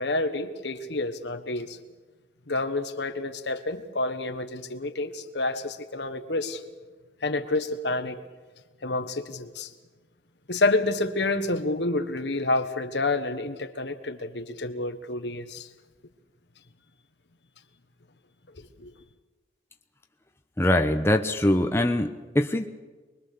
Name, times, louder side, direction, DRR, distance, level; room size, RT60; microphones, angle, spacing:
voice 1, 0.0-1.8 2.5-6.6 7.2-8.2 8.8-9.7 10.5-15.7 18.6-18.9, left 2 dB, 75° left, 8 dB, 1.4 m, -29 dB
voice 2, 20.6-22.7, left 1 dB, 15° left, 5 dB, 0.9 m, -23 dB
24.5 x 22.0 x 6.8 m, 1.3 s
head